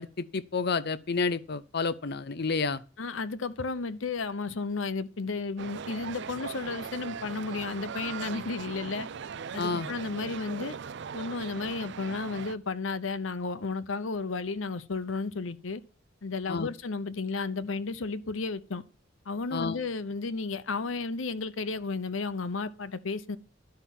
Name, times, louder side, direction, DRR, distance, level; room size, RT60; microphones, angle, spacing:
voice 1, 0.0-2.8 9.6-9.9 16.5-16.7 19.5-19.8, left 4 dB, 60° left, 0.7 m, -30 dB
voice 2, 3.0-9.1 9.5-10.8 11.1-15.8 16.2-18.8 19.3-23.4, left 4 dB, 90° left, 0.8 m, -33 dB
sound 1, 5.6-12.6, right 6 dB, 65° right, 0.5 m, -39 dB
11.5 x 5.7 x 7.3 m
head